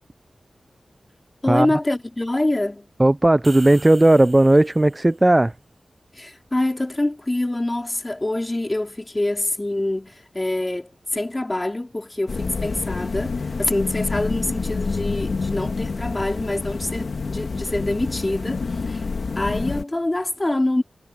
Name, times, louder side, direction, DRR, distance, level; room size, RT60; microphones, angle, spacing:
voice 1, 1.4-2.9 6.1-19.1 19.4-20.8, left 1 dB, 25° left, 3.7 m, -25 dB
voice 2, 3.0-5.5, right 1 dB, 25° right, 0.3 m, -15 dB
sound 1, 3.2-5.2, right 3 dB, 45° right, 4.3 m, -43 dB
sound 2, 12.3-19.8, left 4 dB, 70° left, 1.6 m, -28 dB
cardioid pair, 60°, 0 cm